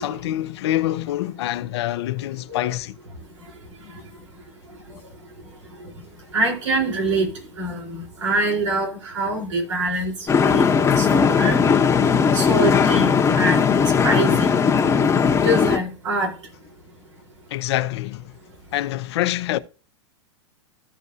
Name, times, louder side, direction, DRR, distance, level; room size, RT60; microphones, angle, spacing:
voice 1, 0.0-3.0 17.5-18.2 18.7-19.6, left 14 dB, 60° left, 0.7 m, -25 dB
voice 2, 6.3-7.3 7.6-7.8 8.2-8.9 9.1-10.1 10.5-10.6 11.0-11.5 12.3-13.1 13.4-13.7 14.0-14.5 15.4-16.3, right 2 dB, 80° right, 4.1 m, -23 dB
sound 1, 10.3-15.8, left 6 dB, 15° left, 1.0 m, -18 dB
15.0 x 5.3 x 2.8 m
hypercardioid pair, 110°, 15 cm